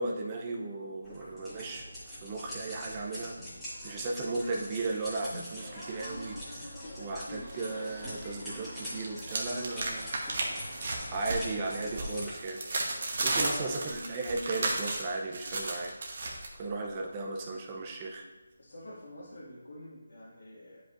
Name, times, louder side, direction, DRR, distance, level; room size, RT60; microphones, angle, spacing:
voice 1, 0.0-3.4 3.8-10.1 11.1-12.6 13.2-15.9 16.6-18.3, right 3 dB, 20° right, 1 dB, 0.5 m, -36 dB
sound 1, 1.0-12.3, equal, ahead, 1.9 m, -44 dB
sound 2, 5.5-12.2, left 1 dB, 35° left, 2.1 m, -47 dB
sound 3, 7.5-8.3 8.6-16.5, right 2 dB, 40° right, 1.1 m, -34 dB
voice 2, 13.3-13.8 16.9-17.1 18.6-20.8, left 1 dB, 75° left, -8 dB, 2.0 m, -46 dB
10.5 x 5.2 x 2.5 m, 1.2 s
figure-of-eight pair, 170°, 0 cm